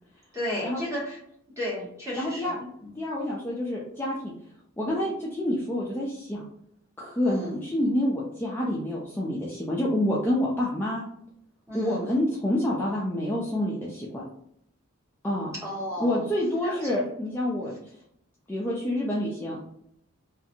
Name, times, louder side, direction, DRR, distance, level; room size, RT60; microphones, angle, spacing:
voice 1, 0.3-1.2 1.6-2.5 2.8-2.9 7.2-7.6 11.7-12.1 15.6-16.2 16.6-17.0, equal, 15° right, -6 dB, 1.1 m, -33 dB
voice 2, 2.2-2.7 3.0-4.3 4.8-6.4 7.0-11.0 11.7-14.2 15.2-15.5 16.0-17.8 18.5-19.6, left 1 dB, 10° left, -6 dB, 0.3 m, -28 dB
2.5 x 2.4 x 2.7 m, 0.73 s
head